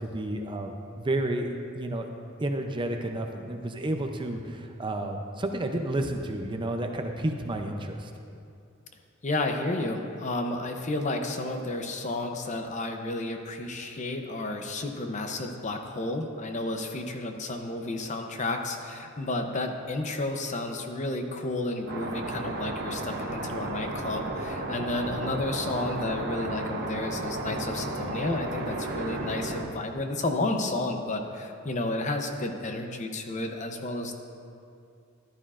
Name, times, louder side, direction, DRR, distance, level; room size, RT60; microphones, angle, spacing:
voice 1, 0.0-1.5 1.7-2.1 2.4-8.1, right 1 dB, 25° right, 4 dB, 0.5 m, -31 dB
voice 2, 9.2-34.1, left 2 dB, 35° left, 4 dB, 0.7 m, -31 dB
sound 1, 21.9-29.6, right 2 dB, 50° right, 1.0 m, -33 dB
14.0 x 11.5 x 2.5 m, 2.5 s
head